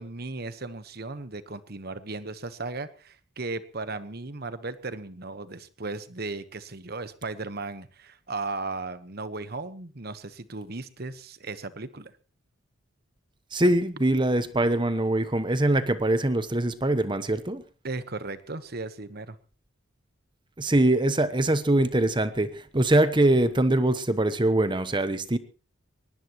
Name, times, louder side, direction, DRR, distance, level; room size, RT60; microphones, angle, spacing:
voice 1, 0.0-12.1 17.8-19.4, right 3 dB, 50° right, 12 dB, 1.2 m, -36 dB
voice 2, 13.5-17.6 20.6-25.4, right 1 dB, 25° right, 12 dB, 1.0 m, -23 dB
22.0 x 19.5 x 3.1 m, 0.35 s
head